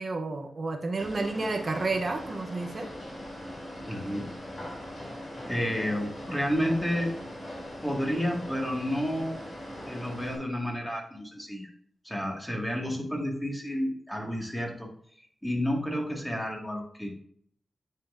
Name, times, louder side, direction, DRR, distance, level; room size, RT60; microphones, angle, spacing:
voice 1, 0.0-2.9, right 3 dB, 45° right, 5 dB, 0.9 m, -31 dB
sound 1, 1.0-10.4, left 1 dB, 40° left, 2.8 m, -40 dB
voice 2, 3.9-4.3 5.5-7.1 7.8-9.4 9.8-11.7 12.0-14.9 15.2-17.2, equal, 10° left, -1 dB, 2.0 m, -31 dB
9.5 x 5.3 x 2.6 m, 0.63 s
wide cardioid pair, 80°, 0 cm